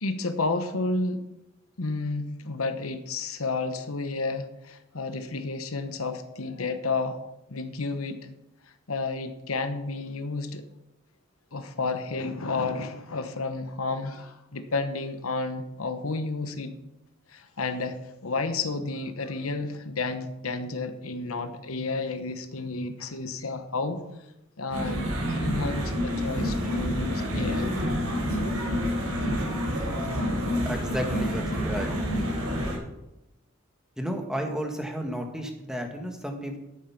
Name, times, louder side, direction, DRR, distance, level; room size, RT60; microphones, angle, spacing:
voice 1, 0.0-1.3 1.8-7.2 7.5-8.2 8.9-10.7 11.5-16.7 17.3-24.0 24.6-27.7, left 3 dB, 80° left, 9 dB, 1.0 m, -31 dB
sound 1, 24.7-32.8, equal, 80° right, 5.0 m, -28 dB
voice 2, 30.6-31.9 34.0-36.6, equal, 5° right, 3 dB, 1.7 m, -32 dB
10.5 x 9.0 x 5.9 m, 0.91 s
head